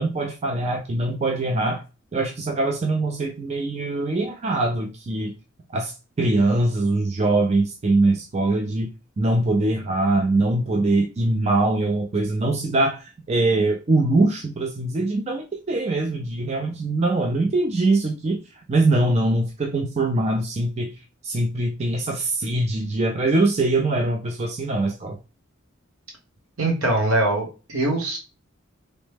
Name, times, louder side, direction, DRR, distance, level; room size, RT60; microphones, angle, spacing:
voice 1, 0.0-1.8 2.1-5.3 5.7-5.9 6.2-8.9 9.2-18.4 18.7-20.9 21.2-25.2, right 2 dB, 30° right, 3 dB, 0.4 m, -22 dB
voice 2, 26.6-28.2, right 2 dB, 80° right, 0 dB, 1.2 m, -22 dB
3.0 x 2.1 x 3.3 m, 0.31 s
head